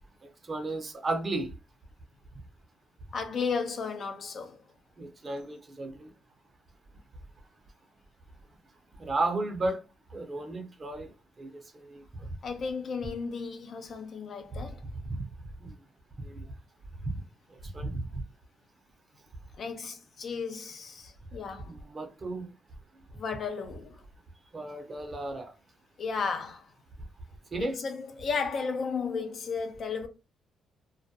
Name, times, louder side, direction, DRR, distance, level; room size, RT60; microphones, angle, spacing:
voice 1, 0.5-1.5 5.0-6.1 9.0-9.8 10.1-11.1 11.4-12.0 15.1-15.2 15.6-15.7 16.2-16.4 17.7-18.1 21.6-22.5 24.5-25.5 27.5-27.8, right 2 dB, 35° right, 0.6 m, -34 dB
voice 2, 3.1-4.6 12.4-14.8 19.6-21.7 23.1-24.0 26.0-26.7 27.6-30.1, left 5 dB, 55° left, 0.5 m, -34 dB
2.3 x 2.1 x 2.7 m
cardioid pair, 90°, 0 cm